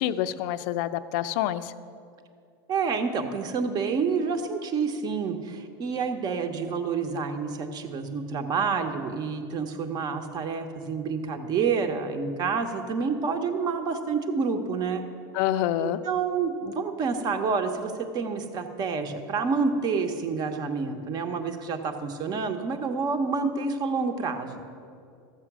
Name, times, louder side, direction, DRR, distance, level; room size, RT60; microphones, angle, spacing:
voice 1, 0.0-1.7 15.3-16.0, left 12 dB, 60° left, 12 dB, 0.5 m, -27 dB
voice 2, 2.7-15.0 15.8-24.6, right 5 dB, 35° right, 6 dB, 1.1 m, -28 dB
13.5 x 7.4 x 6.1 m, 2.4 s
supercardioid pair, 135°, 12 cm